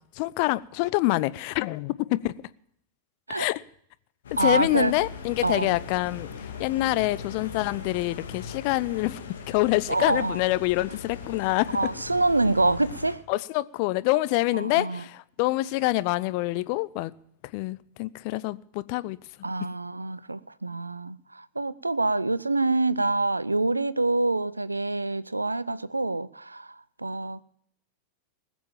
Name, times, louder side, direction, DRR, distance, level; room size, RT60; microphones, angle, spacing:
voice 1, 0.1-2.3 3.3-3.6 4.4-9.2 9.5-11.8 13.3-17.1 17.5-19.2, left 19 dB, 45° left, 0.5 m, -26 dB
sound 1, 4.2-13.2, left 5 dB, 65° left, 2.1 m, -40 dB
voice 2, 4.4-4.9 5.4-5.8 9.9-10.4 11.7-13.2 14.5-15.0 19.4-27.4, right 2 dB, 80° right, 0.5 m, -26 dB
19.5 x 7.1 x 7.3 m
figure-of-eight pair, 90°, 0 cm